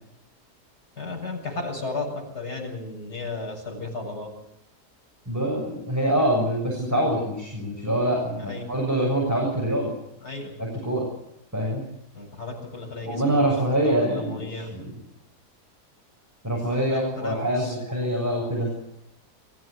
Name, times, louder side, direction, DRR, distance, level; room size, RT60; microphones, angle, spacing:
voice 1, 1.0-4.3 8.5-8.6 10.2-10.5 12.1-14.7 16.6-17.8, left 3 dB, 75° left, 1 dB, 8.5 m, -34 dB
voice 2, 5.3-10.0 10.6-11.1 11.5-11.9 13.0-14.9 16.4-18.7, right 1 dB, 10° right, -2 dB, 6.9 m, -25 dB
28.5 x 16.0 x 8.3 m, 0.83 s
omnidirectional pair, 1.7 m